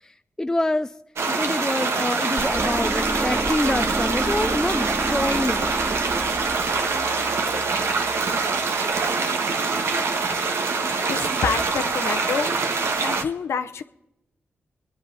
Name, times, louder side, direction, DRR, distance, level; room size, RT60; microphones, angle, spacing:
voice 1, 0.4-0.9 1.3-5.7, left 1 dB, 15° left, 10 dB, 0.4 m, -26 dB
sound 1, 1.2-13.2, right 4 dB, 75° right, 1.4 m, -24 dB
sound 2, 2.4-8.4, right 1 dB, 15° right, 2.2 m, -32 dB
voice 2, 11.1-12.5 13.0-13.8, left 6 dB, 80° left, 8 dB, 0.8 m, -27 dB
26.5 x 10.0 x 4.2 m, 0.90 s
cardioid pair, 75°, 5 cm